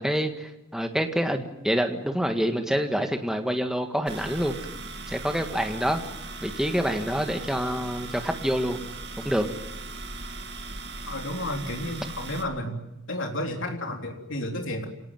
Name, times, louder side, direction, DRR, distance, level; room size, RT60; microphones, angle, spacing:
voice 1, 0.0-4.6 5.1-6.0 6.4-8.8 9.2-9.5, equal, ahead, 5 dB, 1.7 m, -27 dB
sound 1, 4.1-12.4, right 3 dB, 50° right, 2.3 m, -38 dB
voice 2, 11.0-12.8 13.1-14.9, left 1 dB, 70° left, 2 dB, 3.7 m, -32 dB
26.5 x 18.5 x 9.3 m, 0.95 s
head